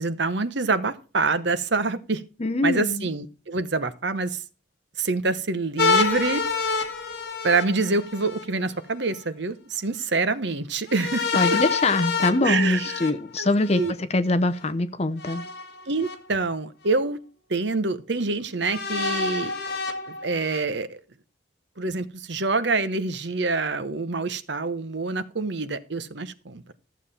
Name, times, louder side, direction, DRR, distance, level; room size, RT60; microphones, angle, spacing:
voice 1, 0.0-2.2 2.6-4.4 5.0-6.4 7.4-11.6 12.4-12.9 13.4-13.5 13.7-13.9 15.9-17.2 17.5-19.5 20.1-21.0 21.8-26.6, right 3 dB, 60° right, 1.0 m, -26 dB
voice 2, 2.4-3.1 11.3-15.4, left 2 dB, 30° left, 0.7 m, -23 dB
sound 1, 5.8-8.4 10.9-13.9 15.2-16.1 16.9-17.0 18.6-20.6, left 4 dB, 55° left, 1.9 m, -27 dB
13.5 x 7.2 x 4.2 m
head